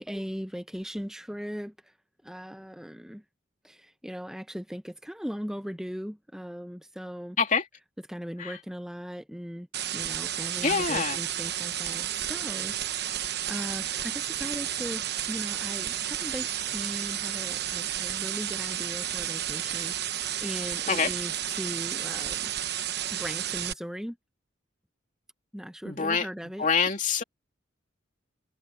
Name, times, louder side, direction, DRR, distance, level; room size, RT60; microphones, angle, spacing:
voice 1, 0.0-1.7 2.2-3.2 3.6-7.4 8.1-9.7 9.9-12.8 13.0-22.5 23.1-24.2 25.5-26.7, equal, 5° right, 1.1 m, -38 dB
sound 1, 9.7-23.7, right 11 dB, 55° right, 1.0 m, -32 dB
voice 2, 10.6-11.2 20.9-21.1 25.8-27.2, left 5 dB, 40° left, 2.8 m, -26 dB
head